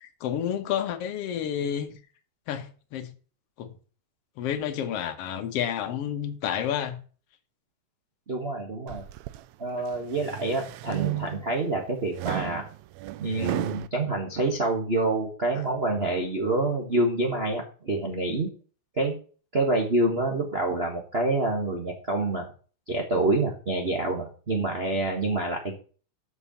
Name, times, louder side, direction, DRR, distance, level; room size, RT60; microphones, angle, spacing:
voice 1, 0.0-2.0 2.5-3.1 3.6-3.7 4.4-7.0 15.6-15.7, left 9 dB, 60° left, 2.0 m, -30 dB
voice 2, 8.3-9.0 9.6-12.6 13.2-18.5 19.0-19.2 19.5-22.5 22.9-25.8, right 2 dB, 35° right, 1.1 m, -27 dB
sound 1, 8.9-9.4 9.9-11.6 12.1-13.9, right 16 dB, 80° right, 1.8 m, -33 dB
6.8 x 6.8 x 7.0 m
omnidirectional pair, 3.4 m